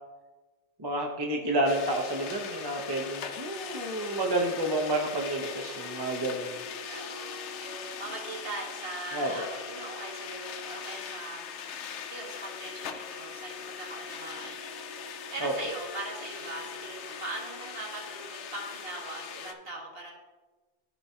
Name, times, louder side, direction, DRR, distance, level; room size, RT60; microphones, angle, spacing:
voice 1, 0.8-6.6 9.1-9.3 15.4-15.5, right 1 dB, 25° right, 1 dB, 0.8 m, -30 dB
sound 1, 1.7-19.5, left 6 dB, 85° left, 0.9 m, -40 dB
voice 2, 6.9-11.4 12.1-14.6 15.3-20.1, right 2 dB, 55° right, -1 dB, 1.7 m, -40 dB
13.5 x 4.6 x 2.8 m, 1.2 s
omnidirectional pair, 1.1 m